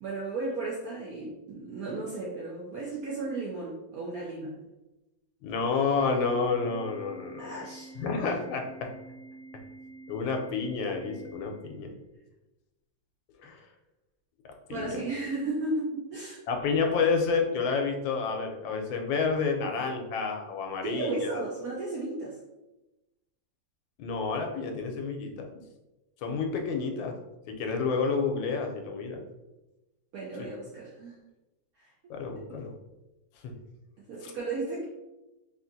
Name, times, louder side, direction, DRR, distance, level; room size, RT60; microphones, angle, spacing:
voice 1, 0.0-4.5 7.4-7.9 14.7-16.4 20.8-22.4 30.1-31.2 32.5-32.6 34.1-34.8, right 2 dB, 70° right, -4 dB, 0.8 m, -34 dB
voice 2, 5.4-7.7 8.0-8.9 10.1-11.9 13.4-13.6 14.7-14.9 16.5-21.4 24.0-25.4 26.2-27.2 27.5-29.2 32.1-32.7 33.4-33.5 34.2-34.3, left 4 dB, 85° left, 3 dB, 1.3 m, -29 dB
Organ, 6.0-12.0, right 3 dB, 35° right, 1.4 m, -48 dB
3.5 x 2.5 x 2.6 m, 1.0 s
omnidirectional pair, 2.1 m